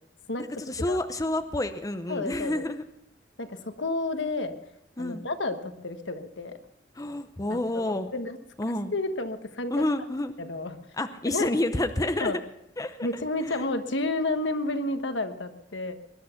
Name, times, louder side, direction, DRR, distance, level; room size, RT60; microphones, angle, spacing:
voice 1, 0.6-2.8 5.0-5.3 6.9-8.1 8.6-8.9 9.7-10.3 11.0-12.4 12.8-13.1 13.4-13.6, left 1 dB, 20° left, 9 dB, 0.8 m, -29 dB
voice 2, 2.1-2.6 3.4-4.6 5.0-6.6 7.5-8.4 8.9-9.8 10.4-10.8 11.3-11.5 12.2-12.4 13.0-15.9, left 2 dB, 80° left, 8 dB, 1.4 m, -31 dB
20.5 x 11.0 x 5.9 m, 0.76 s
head